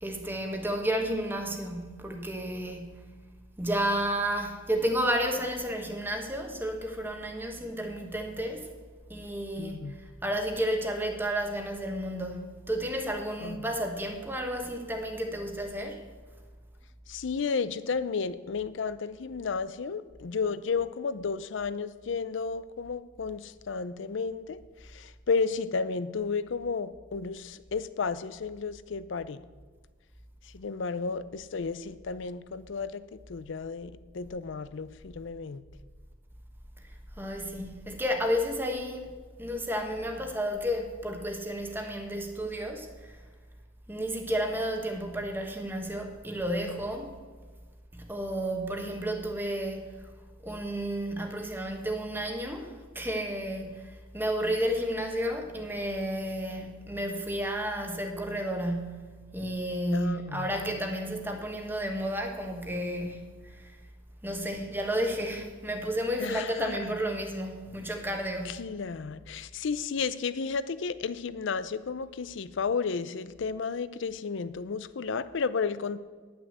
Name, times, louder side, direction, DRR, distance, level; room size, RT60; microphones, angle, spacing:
voice 1, 0.0-3.0 3.6-8.7 9.1-9.8 10.2-16.0 37.2-39.1 39.4-42.9 43.9-47.1 47.9-49.8 50.4-53.8 54.1-63.7 64.2-68.6, equal, 10° right, 4 dB, 1.3 m, -32 dB
voice 2, 9.6-10.0 13.4-13.7 17.1-24.6 24.9-29.4 30.5-33.0 33.3-35.6 59.9-60.5 66.2-66.8 68.4-76.0, left 5 dB, 65° left, 15 dB, 0.5 m, -32 dB
10.5 x 6.3 x 7.9 m, 1.4 s
head